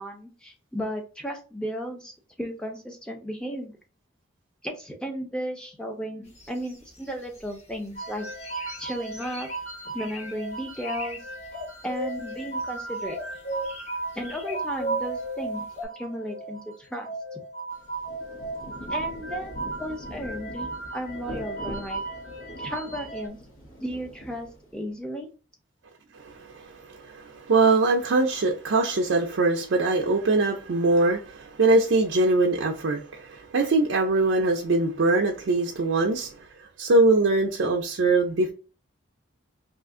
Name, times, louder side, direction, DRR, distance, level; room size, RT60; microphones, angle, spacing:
voice 1, 0.0-3.8 4.6-8.3 8.8-9.5 9.9-11.2 11.8-13.2 14.1-15.7 15.9-17.4 18.9-19.5 19.8-22.0 22.6-23.4 23.8-25.3, equal, 5° left, 0.5 m, -34 dB
sound 1, 6.4-7.6 8.0-9.6 10.0-10.3 10.7-11.2 11.4-12.7 13.1-15.2 15.8-15.9, equal, 30° left, 0.9 m, -36 dB
sound 2, 8.0-23.3, right 3 dB, 60° left, 1.2 m, -36 dB
Rain, 17.7-24.9, equal, 75° left, 1.2 m, -43 dB
voice 2, 26.1-38.5, right 2 dB, 60° right, 0.4 m, -23 dB
2.8 x 2.4 x 3.6 m
head